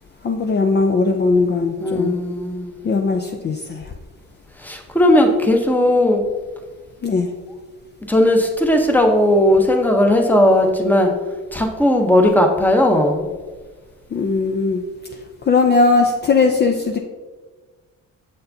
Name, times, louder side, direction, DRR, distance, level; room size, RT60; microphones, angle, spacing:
voice 1, 0.2-2.2 2.8-3.9 7.0-7.3 14.1-14.8 15.5-17.0, left 4 dB, 35° left, 4 dB, 0.5 m, -18 dB
voice 2, 1.8-2.8 4.6-6.3 8.1-11.1 11.5-13.3, left 1 dB, 5° left, 3 dB, 0.9 m, -16 dB
6.7 x 6.6 x 2.7 m, 1.3 s
cardioid pair, 90°, 30 cm